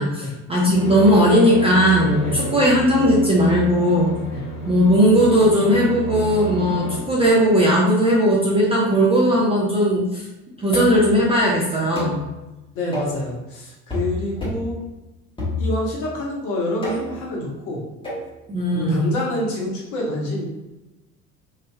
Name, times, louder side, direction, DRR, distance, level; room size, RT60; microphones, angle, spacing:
voice 1, 0.0-4.1 4.7-10.2 10.6-12.2 18.5-19.1, equal, 15° right, -5 dB, 0.5 m, -17 dB
sound 1, 0.7-7.0, equal, 30° left, 1.3 m, -30 dB
voice 2, 2.2-2.5 4.3-4.4 12.7-14.8 15.6-17.8 18.7-20.4, left 1 dB, 45° left, -3 dB, 1.1 m, -27 dB
sound 2, 10.7-11.1 12.0-12.2 12.9-13.2 13.9-14.1 14.4-14.7 15.4-16.0 16.8-17.2 18.0-18.3, left 1 dB, 10° left, 1.2 m, -28 dB
3.2 x 2.7 x 2.2 m, 1.0 s
figure-of-eight pair, 65°, 44 cm